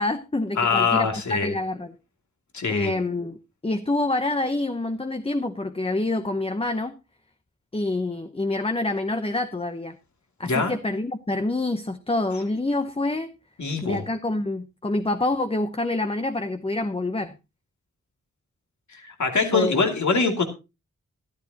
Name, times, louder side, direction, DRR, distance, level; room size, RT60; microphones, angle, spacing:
voice 1, 0.0-1.9 2.7-3.4 3.6-7.0 7.7-10.0 10.4-13.3 13.8-17.3 19.5-19.8, left 2 dB, 20° left, 8 dB, 0.8 m, -27 dB
voice 2, 0.6-1.5 2.5-2.9 10.4-10.7 13.6-14.0 18.9-20.4, left 4 dB, 70° left, 4 dB, 2.6 m, -23 dB
13.5 x 13.0 x 2.9 m, 0.28 s
wide cardioid pair, 75°, 30 cm